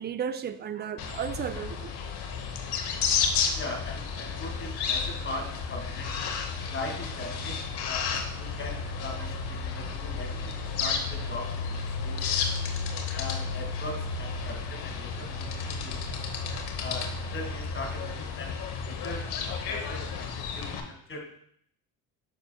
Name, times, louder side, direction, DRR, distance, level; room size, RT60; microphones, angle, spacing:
voice 1, 0.0-1.9 3.5-3.6 12.5-12.6, right 8 dB, 25° right, 11 dB, 0.4 m, -34 dB
sound 1, 1.0-20.8, left 5 dB, 60° left, 1.1 m, -32 dB
voice 2, 3.5-6.2 6.7-12.3 13.2-16.2 16.8-21.3, left 2 dB, 25° left, 2 dB, 1.7 m, -40 dB
6.7 x 6.7 x 2.2 m, 0.67 s
supercardioid pair, 80°, 44 cm